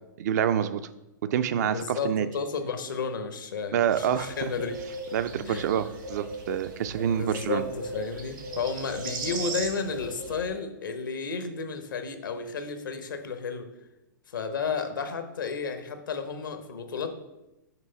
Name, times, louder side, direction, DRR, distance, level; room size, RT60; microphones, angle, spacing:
voice 1, 0.2-0.9 1.3-2.3 3.7-4.4 5.1-7.6, right 9 dB, 55° right, 12 dB, 0.4 m, -27 dB
voice 2, 1.6-4.8 5.4-5.7 7.1-13.7 14.3-17.1, left 5 dB, 75° left, 8 dB, 0.8 m, -32 dB
sound 1, 3.9-10.5, right 2 dB, 75° right, 1.6 m, -38 dB
5.9 x 3.1 x 5.6 m, 0.95 s
hypercardioid pair, 115°, 11 cm